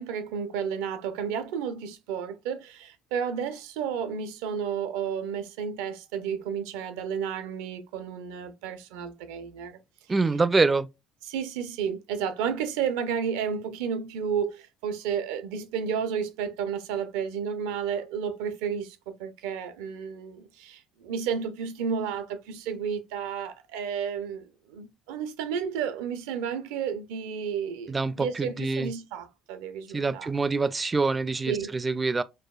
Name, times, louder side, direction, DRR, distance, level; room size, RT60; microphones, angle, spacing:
voice 1, 0.0-9.8 11.2-30.3 31.5-31.7, right 7 dB, 80° right, 0.5 m, -32 dB
voice 2, 10.1-10.9 27.9-28.9 29.9-32.2, right 3 dB, 25° right, 0.4 m, -25 dB
4.8 x 2.2 x 2.3 m
hypercardioid pair, 70°, 0 cm